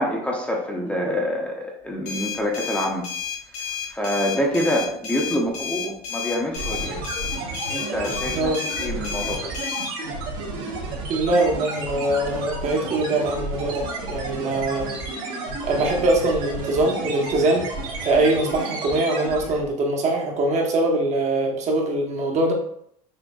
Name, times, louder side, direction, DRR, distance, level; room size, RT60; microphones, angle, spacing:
voice 1, 0.0-3.1 3.6-7.0 7.7-9.6, equal, 10° left, -1 dB, 0.7 m, -26 dB
sound 1, 2.1-9.9, left 8 dB, 75° left, 0.9 m, -31 dB
sound 2, 6.6-19.7, right 3 dB, 70° right, 1.3 m, -31 dB
voice 2, 8.3-8.6 11.1-14.9 15.6-17.6 18.0-22.5, right 2 dB, 45° right, 0 dB, 1.0 m, -22 dB
6.2 x 2.5 x 2.3 m, 0.69 s
supercardioid pair, 115°, 17 cm